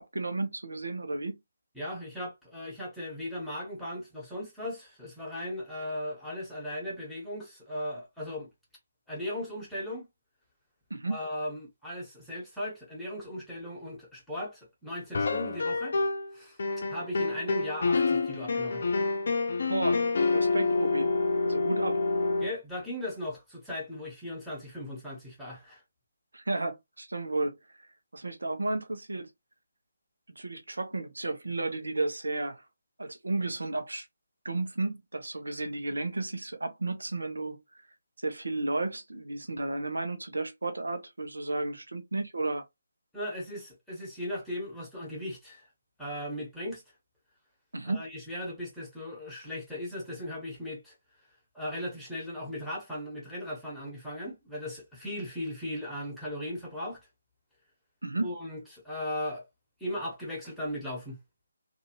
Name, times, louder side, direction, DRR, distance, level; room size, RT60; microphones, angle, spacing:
voice 1, 0.0-1.4 10.9-11.2 19.7-20.1 20.3-21.1 21.5-22.0 26.3-27.9 28.1-29.3 30.4-32.6 33.0-34.1 34.4-37.6 38.2-42.6 47.7-48.0 58.0-58.3, right 2 dB, 85° right, 0.8 m, -33 dB
voice 2, 1.7-8.5 9.1-10.1 11.1-16.0 16.3-16.6 16.9-18.8 22.4-25.8 43.1-45.7 46.0-46.8 47.8-50.9 51.5-57.0 58.2-59.4 59.8-61.2, left 1 dB, ahead, 1.2 m, -37 dB
sound 1, 15.1-16.3 16.6-22.5, left 3 dB, 55° left, 0.6 m, -27 dB
2.6 x 2.6 x 2.9 m
figure-of-eight pair, 155°, 0 cm